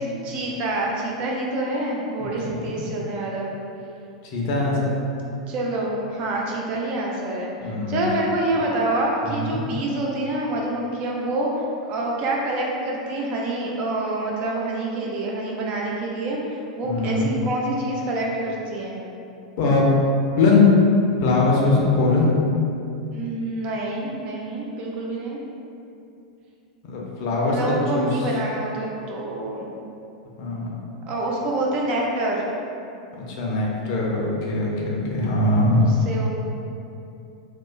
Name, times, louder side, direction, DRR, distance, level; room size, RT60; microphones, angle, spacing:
voice 1, 0.0-3.5 5.5-19.0 23.1-25.4 27.4-29.7 31.1-32.4 35.3-36.3, right 2 dB, 35° right, -2 dB, 0.4 m, -27 dB
voice 2, 2.4-2.9 4.3-4.9 7.6-8.3 9.2-9.6 16.8-17.3 19.6-19.9 20.4-20.7 21.2-22.3 26.9-28.1 30.4-30.7 33.3-35.8, left 3 dB, 45° left, -3 dB, 0.5 m, -21 dB
2.9 x 2.1 x 2.4 m, 2.6 s
figure-of-eight pair, 90°, 3 cm